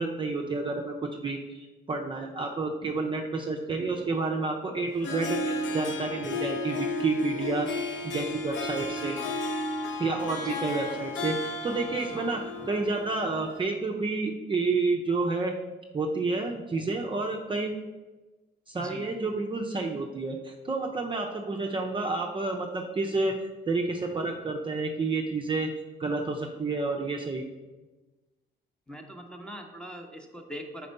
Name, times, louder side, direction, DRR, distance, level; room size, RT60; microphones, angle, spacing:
voice 1, 0.0-7.7 8.0-9.2 10.0-15.5 15.9-17.8 18.7-23.4 23.7-25.7 26.0-27.5, right 3 dB, 25° right, 1 dB, 0.5 m, -30 dB
Harp, 4.9-13.6, left 2 dB, 70° left, 0.8 m, -33 dB
voice 2, 18.7-19.1 28.9-30.9, equal, 5° left, 3 dB, 0.8 m, -42 dB
4.4 x 4.2 x 5.3 m, 1.2 s
cardioid pair, 90°, 20 cm